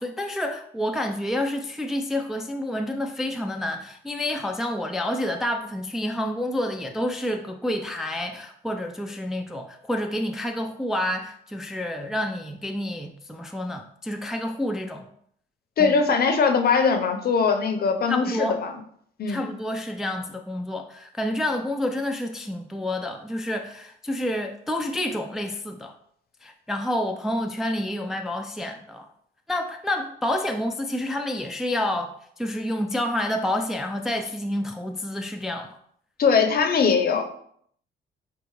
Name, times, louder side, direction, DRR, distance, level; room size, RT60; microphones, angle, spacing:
voice 1, 0.0-15.1 15.8-15.9 18.1-18.6 19.3-25.9 26.4-29.1 29.5-35.8, left 1 dB, ahead, 3 dB, 0.3 m, -29 dB
voice 2, 15.8-18.7 19.2-19.4 36.2-37.2, left 5 dB, 50° left, 6 dB, 0.6 m, -21 dB
4.7 x 2.5 x 3.0 m, 0.65 s
cardioid pair, 90°, 20 cm